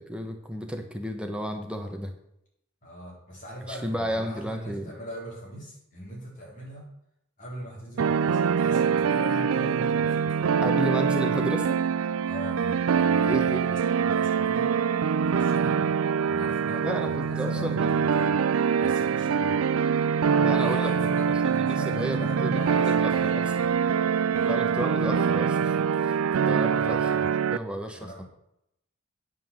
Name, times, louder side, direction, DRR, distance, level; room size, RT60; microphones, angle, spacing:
voice 1, 0.0-2.1 3.7-5.0 10.6-12.1 13.2-13.7 15.6-15.9 16.7-18.3 20.4-21.1 21.4-23.5 24.5-28.1, right 1 dB, 5° right, 4 dB, 1.0 m, -33 dB
voice 2, 2.8-6.8 7.4-10.6 12.2-14.7 15.2-15.9 16.3-18.4 18.8-19.6 20.6-23.8 24.3-24.6 26.6-27.2 28.0-28.2, equal, 40° left, -4 dB, 4.2 m, -41 dB
sound 1, 8.0-27.6, right 6 dB, 85° right, 0.4 m, -24 dB
9.3 x 5.9 x 7.1 m, 0.79 s
head